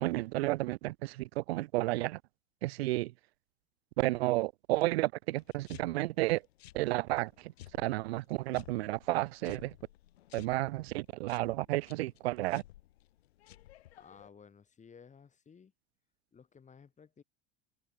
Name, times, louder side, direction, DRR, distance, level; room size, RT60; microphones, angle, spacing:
voice 1, 0.0-2.2 2.6-3.1 4.0-6.4 6.7-9.7 10.3-12.6, right 19 dB, 90° right, 0.5 m, -32 dB
sound 1, 5.4-14.3, left 14 dB, 90° left, 7.3 m, -56 dB
voice 2, 14.0-15.7 16.3-17.2, left 6 dB, 25° left, 3.9 m, -56 dB
open air
supercardioid pair, 110°, 30 cm